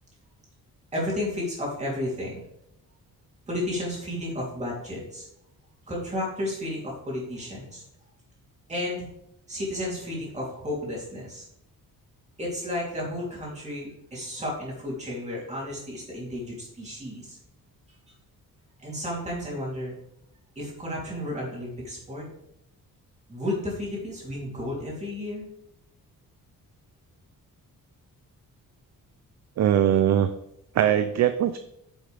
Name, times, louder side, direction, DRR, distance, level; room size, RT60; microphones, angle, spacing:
voice 1, 0.9-2.4 3.5-5.2 5.9-7.8 8.7-9.1 9.5-11.4 12.4-17.4 18.8-20.0 20.5-22.2 23.3-25.5, left 1 dB, 20° right, -5 dB, 3.1 m, -32 dB
voice 2, 29.6-30.3 30.7-31.6, right 10 dB, 50° right, 10 dB, 0.4 m, -21 dB
9.4 x 7.0 x 3.4 m, 0.78 s
wide cardioid pair, 180°, 36 cm